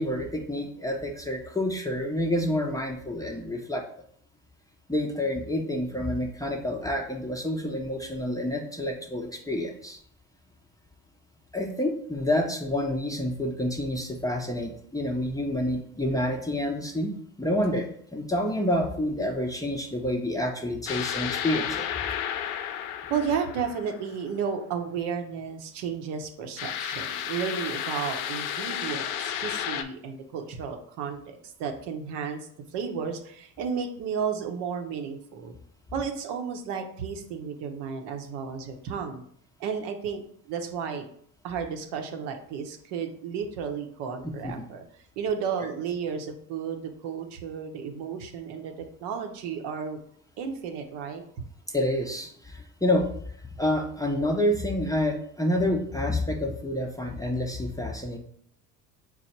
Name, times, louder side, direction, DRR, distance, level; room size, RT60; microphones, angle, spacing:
voice 1, 0.0-3.8 4.9-10.0 11.5-17.1 17.4-21.8 44.4-44.5 51.7-53.1 53.6-58.2, left 1 dB, 10° left, 2 dB, 0.6 m, -28 dB
sound 1, 20.9-24.3 26.6-29.8, left 9 dB, 75° left, 0.5 m, -32 dB
voice 2, 23.1-32.4 32.7-35.6 35.9-39.2 39.6-40.2 40.5-41.1 41.4-44.8 45.2-50.0 50.4-51.2, right 6 dB, 65° right, 5 dB, 0.8 m, -33 dB
4.6 x 2.1 x 4.2 m, 0.62 s
hypercardioid pair, 65°, 45 cm